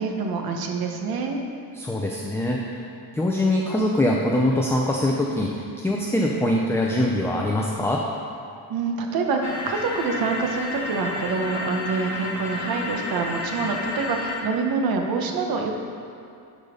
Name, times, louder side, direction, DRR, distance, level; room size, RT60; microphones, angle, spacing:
voice 1, 0.0-1.4 8.7-15.7, right 4 dB, 60° right, 3 dB, 1.0 m, -26 dB
voice 2, 1.7-2.8 3.1-8.0, left 1 dB, 5° left, -2 dB, 0.4 m, -23 dB
sound 1, 9.4-14.4, left 2 dB, 40° left, 1.0 m, -31 dB
12.0 x 4.0 x 5.1 m, 2.5 s
cardioid pair, 135°, 41 cm